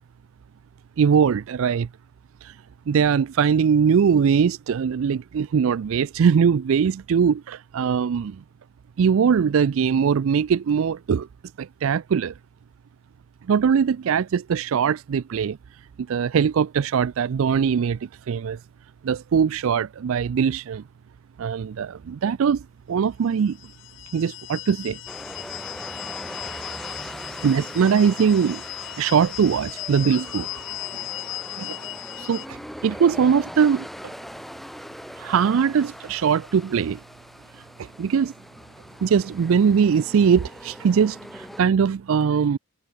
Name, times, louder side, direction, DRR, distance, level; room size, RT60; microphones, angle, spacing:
voice 1, 1.0-1.9 2.4-2.5 2.9-8.4 9.0-11.3 11.6-12.3 13.5-15.6 16.1-18.6 19.0-20.8 21.4-22.6 22.9-23.6 24.1-25.0 27.4-28.6 29.0-30.5 31.6-31.8 32.2-33.9 35.2-37.0 37.8-38.3 39.0-42.6, right 7 dB, 65° right, 0.4 m, -21 dB
sound 1, 23.5-32.5, left 14 dB, 55° left, 0.6 m, -37 dB
sound 2, 25.1-41.6, equal, ahead, 1.1 m, -40 dB
head